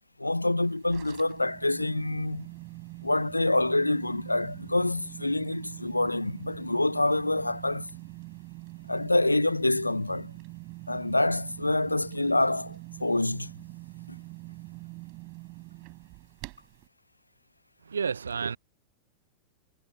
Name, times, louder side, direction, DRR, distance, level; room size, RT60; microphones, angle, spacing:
voice 1, 0.2-2.5 3.0-7.9 8.9-10.3 10.9-13.5 14.1-14.2, left 2 dB, 85° left, 0.5 m, -26 dB
sound 1, 0.6-16.9, right 27 dB, 45° right, 4.8 m, -44 dB
voice 2, 17.9-18.6, right 6 dB, 70° right, 0.6 m, -30 dB
figure-of-eight pair, 90°, 0 cm